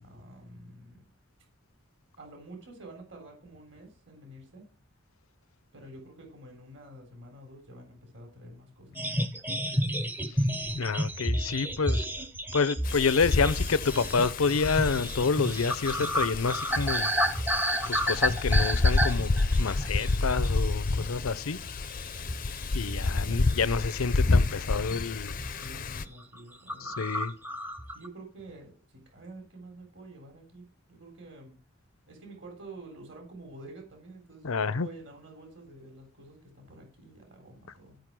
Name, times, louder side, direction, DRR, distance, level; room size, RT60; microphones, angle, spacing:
voice 1, 0.0-1.0 2.2-4.7 5.7-9.1 23.0-23.3 25.5-27.0 27.9-31.6 32.1-38.0, right 2 dB, 60° right, 3.5 m, -48 dB
sound 1, 9.0-20.7 21.0-21.3 21.7-23.2 23.5-24.3 24.8-25.0 25.3-25.7 26.0-26.1 26.3-26.4 26.7-28.1, equal, 10° right, 0.6 m, -31 dB
voice 2, 10.7-12.1 12.5-17.1 17.9-19.3 19.6-21.6 22.7-25.5 26.8-27.3 34.4-34.9, left 5 dB, 85° left, 0.6 m, -28 dB
Wind, 12.8-26.0, left 3 dB, 40° left, 0.5 m, -29 dB
13.0 x 5.3 x 6.1 m
head